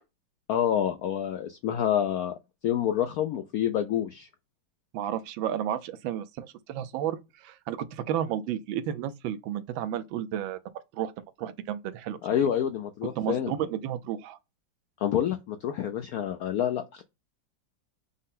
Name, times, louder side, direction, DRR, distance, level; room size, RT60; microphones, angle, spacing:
voice 1, 0.5-2.3 2.6-4.3 12.2-13.5 15.0-17.0, left 10 dB, 80° left, 0.8 m, -27 dB
voice 2, 4.9-10.6 10.9-11.1 11.4-12.2 13.2-14.4, right 10 dB, 85° right, 1.3 m, -32 dB
5.5 x 2.0 x 3.7 m
omnidirectional pair, 2.1 m